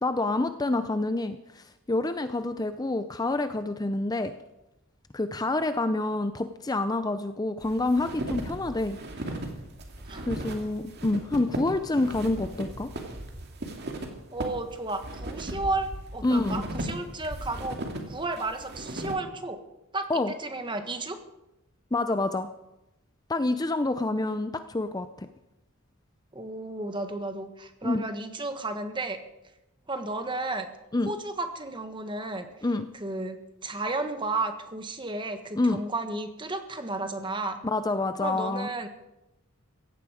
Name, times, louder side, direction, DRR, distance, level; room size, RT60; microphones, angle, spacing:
voice 1, 0.0-4.3 5.1-9.0 10.3-12.9 16.2-16.6 20.1-20.3 21.9-22.5 23.3-25.3 27.8-28.0 30.9-31.1 32.6-32.9 35.6-35.8 37.6-38.7, left 2 dB, 20° left, 10 dB, 0.5 m, -27 dB
Walking-in-snow-with-boots, 7.6-19.1, right 1 dB, 50° right, 2.4 m, -37 dB
voice 2, 14.3-17.8 18.1-19.6 19.9-21.2 26.3-29.2 29.9-30.7 31.0-32.5 33.0-33.4 33.6-37.6 38.2-38.9, right 2 dB, 20° right, 7 dB, 1.5 m, -33 dB
17.0 x 15.5 x 5.0 m, 0.93 s
head